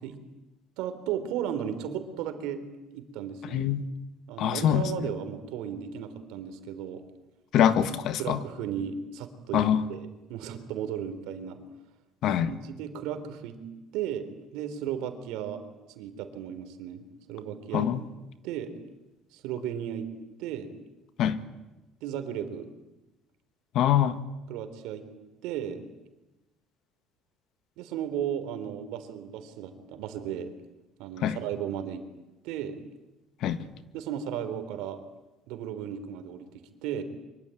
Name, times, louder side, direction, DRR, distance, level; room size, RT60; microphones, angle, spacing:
voice 1, 0.8-2.7 2.9-3.7 4.3-7.0 8.2-9.6 9.9-11.6 12.4-13.6 13.9-14.2 14.5-15.6 16.0-17.9 18.4-18.7 19.3-20.1 20.4-20.7 22.0-22.7 24.5-25.1 25.4-25.8 27.8-30.5 31.0-32.0 32.4-32.8 33.9-35.0 35.5-37.0, right 9 dB, 85° right, 8 dB, 3.7 m, -35 dB
voice 2, 3.5-3.8 4.4-4.9 7.5-8.4 9.5-9.8 12.2-12.5 17.7-18.0 21.2-21.4 23.7-24.2 31.2-31.4 33.4-33.6, left 9 dB, 55° left, 12 dB, 1.7 m, -24 dB
24.5 x 24.0 x 9.2 m, 1.0 s
cardioid pair, 155°, 0 cm